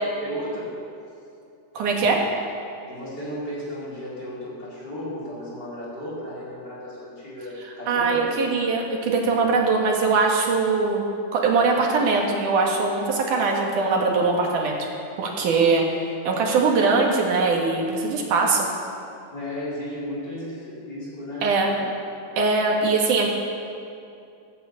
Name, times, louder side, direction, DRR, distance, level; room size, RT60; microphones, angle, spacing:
voice 1, 0.2-0.8 2.9-8.3 19.3-21.9, left 1 dB, 30° left, -7 dB, 4.0 m, -34 dB
voice 2, 1.7-2.2 7.9-14.8 15.2-15.8 16.2-18.7 21.4-21.7 22.4-23.3, right 4 dB, 80° right, 0 dB, 3.3 m, -21 dB
16.0 x 8.6 x 8.3 m, 2.6 s
omnidirectional pair, 3.6 m